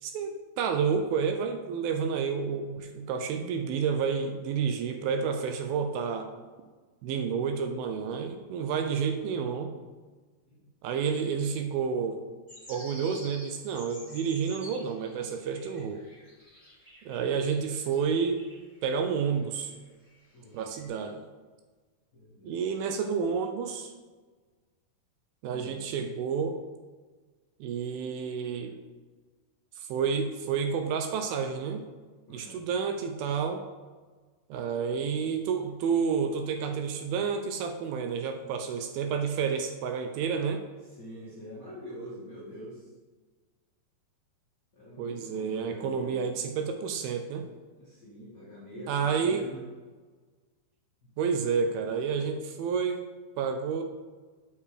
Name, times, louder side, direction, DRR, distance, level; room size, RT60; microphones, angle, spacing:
voice 1, 0.0-6.3 7.0-9.7 10.8-12.2 12.7-16.1 17.1-18.5 18.8-19.7 20.5-21.2 22.4-23.9 25.4-26.6 27.6-28.8 29.8-31.8 32.3-33.6 34.5-40.6 45.0-47.5 48.9-49.5 51.2-53.0 53.4-53.8, right 6 dB, 85° right, 5 dB, 2.1 m, -30 dB
sound 1, 12.5-18.8 19.2-20.2 20.5-20.9, equal, 10° right, 1.5 m, -50 dB
voice 2, 20.3-20.7 22.1-22.6 25.5-25.8 32.3-32.6 38.6-38.9 40.8-42.9 44.7-46.2 47.7-49.6 51.0-51.1, equal, 80° left, -10 dB, 0.8 m, -45 dB
6.8 x 5.4 x 4.9 m, 1.4 s
omnidirectional pair, 4.7 m